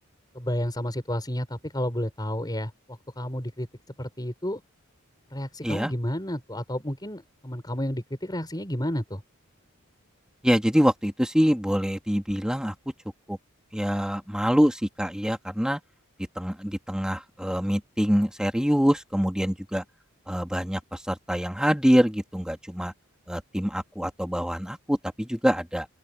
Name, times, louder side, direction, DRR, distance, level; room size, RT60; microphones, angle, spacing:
voice 1, 0.3-3.7 4.0-4.6 5.3-9.2, equal, 20° left, 5.6 m, -31 dB
voice 2, 10.4-12.7 13.3-13.4 13.7-15.8 16.4-19.8 20.3-22.9 23.3-25.9, equal, 5° right, 2.3 m, -25 dB
open air
head